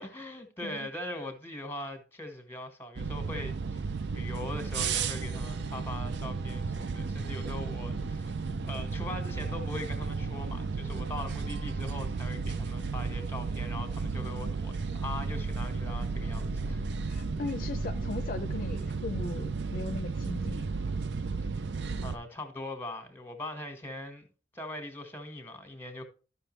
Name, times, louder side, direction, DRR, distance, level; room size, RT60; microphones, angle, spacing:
voice 1, 0.0-8.3 8.6-16.8 22.0-24.3 24.5-26.1, left 1 dB, 15° left, 1.5 m, -41 dB
sound 1, 3.0-22.2, right 4 dB, 75° right, 0.5 m, -33 dB
voice 2, 17.1-20.7, left 3 dB, 55° left, 0.6 m, -38 dB
13.0 x 5.8 x 3.2 m
head